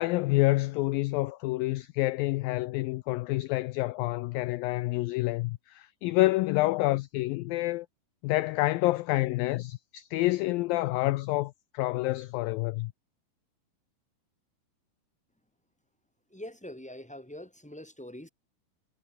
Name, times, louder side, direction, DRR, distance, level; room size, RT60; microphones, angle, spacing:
voice 1, 0.0-7.9 8.2-12.9, left 19 dB, 85° left, 2.0 m, -28 dB
voice 2, 16.3-18.3, left 1 dB, ahead, 6.3 m, -43 dB
omnidirectional pair, 4.7 m